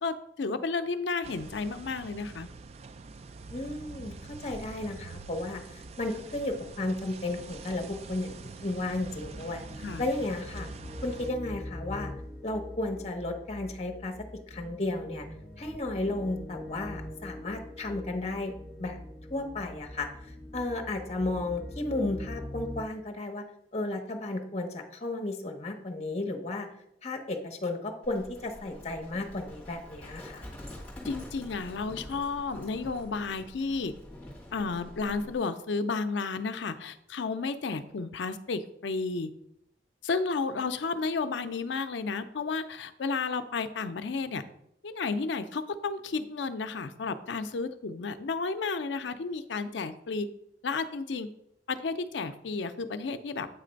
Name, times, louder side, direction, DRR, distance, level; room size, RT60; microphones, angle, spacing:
voice 1, 0.0-2.5 9.8-10.1 31.0-33.9 34.5-39.3 40.0-44.4 44.8-50.3 50.6-51.3 51.7-53.5, left 4 dB, 80° left, 11 dB, 0.5 m, -32 dB
sound 1, 1.2-11.3, right 4 dB, 35° right, 0.3 m, -45 dB
voice 2, 3.5-4.1 4.4-8.3 8.6-10.7 11.0-12.1 12.4-14.1 14.5-15.3 15.6-19.0 19.3-23.4 23.7-26.7 27.0-30.4, left 2 dB, 35° left, 3 dB, 0.9 m, -33 dB
sound 2, 9.0-22.9, left 1 dB, 10° right, 1.9 m, -43 dB
Livestock farm animals working animals, 28.0-35.4, left 1 dB, 10° left, 1.9 m, -46 dB
8.2 x 3.3 x 5.1 m, 0.77 s
head